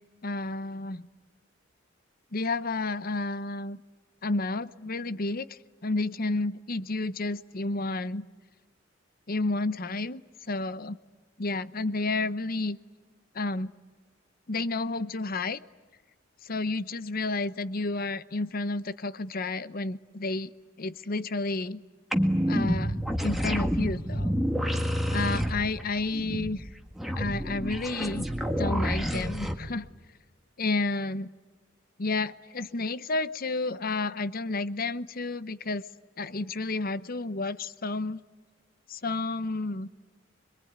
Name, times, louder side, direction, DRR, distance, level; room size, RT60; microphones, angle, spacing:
voice 1, 0.2-1.1 2.3-3.8 4.2-8.3 9.3-10.2 10.5-11.0 11.4-12.8 13.3-13.7 14.5-15.6 16.4-20.5 20.8-21.8 22.5-24.3 25.1-26.7 27.2-28.3 28.6-29.9 30.6-31.3 32.0-35.8 36.2-38.2 38.9-39.9, left 3 dB, 45° left, 15 dB, 0.9 m, -31 dB
sound 1, 22.1-29.5, equal, ahead, 1.8 m, -28 dB
26.0 x 23.0 x 9.5 m, 1.4 s
head